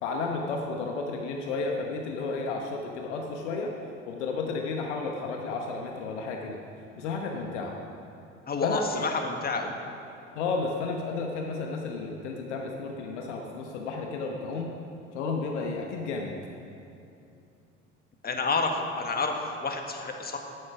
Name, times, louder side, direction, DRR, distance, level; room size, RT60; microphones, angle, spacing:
voice 1, 0.0-3.7 4.1-6.6 7.0-7.8 8.6-9.1 10.3-14.7 15.1-16.3, left 4 dB, 65° left, 2 dB, 1.2 m, -32 dB
voice 2, 8.5-9.7 18.2-20.4, left 3 dB, 25° left, 4 dB, 1.6 m, -29 dB
12.0 x 9.3 x 6.0 m, 2.7 s
figure-of-eight pair, 65°, 37 cm